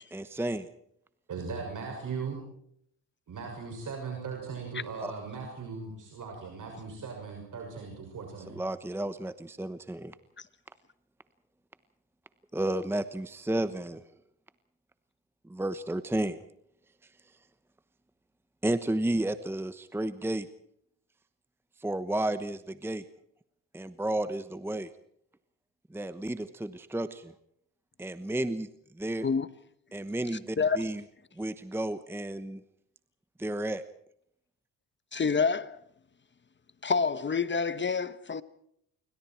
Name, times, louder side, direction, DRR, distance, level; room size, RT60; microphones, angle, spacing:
voice 1, 0.1-0.7 5.0-5.1 8.5-10.1 12.5-14.0 15.4-16.4 18.6-20.5 21.8-23.0 23.7-24.9 25.9-27.3 28.0-28.7 28.9-29.3 29.9-31.0 31.4-32.6 33.4-33.8, right 1 dB, 5° right, 1.0 m, -32 dB
voice 2, 1.3-2.4 3.3-8.6, right 5 dB, 45° right, 6.4 m, -38 dB
voice 3, 35.1-35.8 36.8-38.4, left 5 dB, 25° left, 1.1 m, -27 dB
27.5 x 24.0 x 4.5 m
cardioid pair, 100°, 41 cm